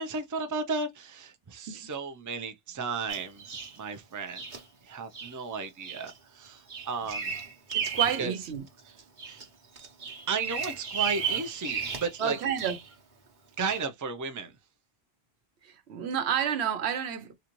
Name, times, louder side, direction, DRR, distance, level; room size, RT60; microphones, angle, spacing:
voice 1, 0.0-4.5 4.8-7.3 8.2-8.3 8.8-9.0 9.2-9.4 10.3-12.4 13.6-14.5, right 4 dB, 25° right, 0.4 m, -34 dB
Bird vocalization bird call bird song, 3.1-3.8 4.3-4.6 5.1-5.3 5.8-6.1 6.4-8.3 8.7-9.4 9.8-12.9 13.6-13.8, right 7 dB, 50° right, 1.0 m, -34 dB
voice 2, 7.7-8.6 12.2-12.8 15.6-17.3, right 8 dB, 85° right, 1.0 m, -30 dB
3.9 x 2.4 x 2.9 m
omnidirectional pair, 1.1 m